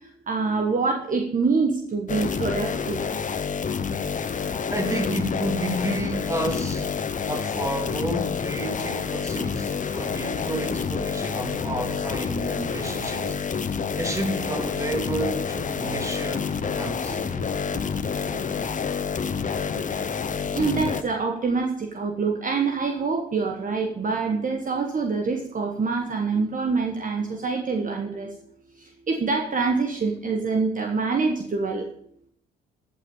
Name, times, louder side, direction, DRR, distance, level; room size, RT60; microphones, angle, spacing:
voice 1, 0.3-3.0 12.9-13.3 17.1-17.4 17.7-17.8 20.5-28.3 28.8-31.9, right 4 dB, 40° right, 1.4 m, -26 dB
sound 1, 2.1-21.0, left 6 dB, 40° left, 0.9 m, -28 dB
voice 2, 4.7-7.0 7.3-13.4 14.0-17.2, right 1 dB, 15° right, 2.7 m, -31 dB
15.0 x 5.8 x 5.5 m
hypercardioid pair, 55°, 21 cm